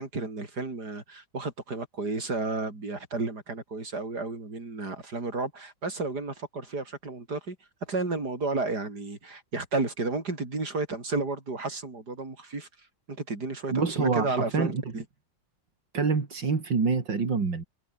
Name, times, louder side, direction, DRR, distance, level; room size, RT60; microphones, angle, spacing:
voice 1, 0.0-7.6 7.8-15.0, right 3 dB, 65° right, 5.5 m, -32 dB
voice 2, 13.7-14.8 15.9-17.6, right 4 dB, 85° right, 3.8 m, -26 dB
omnidirectional pair, 1.9 m